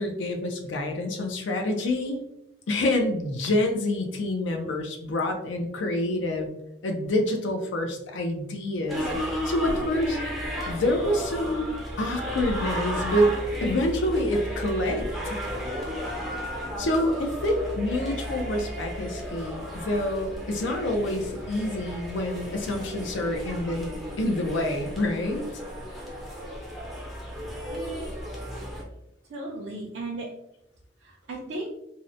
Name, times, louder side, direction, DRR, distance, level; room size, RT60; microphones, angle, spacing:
voice 1, 0.0-2.2 2.7-6.5 6.8-10.2 10.7-15.4 16.6-25.5, left 1 dB, 90° left, 3 dB, 0.5 m, -27 dB
sound 1, 8.9-28.8, equal, ahead, 0.4 m, -34 dB
voice 2, 27.7-28.1 29.3-30.3 31.0-31.7, right 2 dB, 75° right, -4 dB, 0.5 m, -35 dB
2.7 x 2.0 x 2.5 m, 0.83 s
head